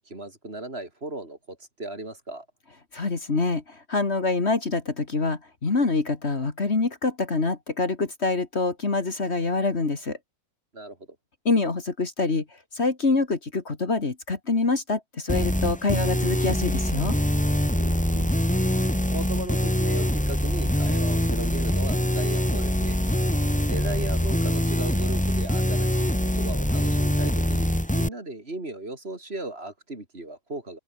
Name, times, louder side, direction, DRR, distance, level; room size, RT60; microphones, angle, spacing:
voice 1, 0.0-2.5 10.7-11.0 17.8-18.4 19.1-23.0 23.7-30.8, right 2 dB, 40° right, 4.2 m, -37 dB
voice 2, 2.9-10.2 11.4-12.4 12.7-17.2, left 3 dB, 45° left, 2.5 m, -25 dB
sound 1, 15.3-28.1, equal, 5° left, 2.6 m, -24 dB
omnidirectional pair, 1.6 m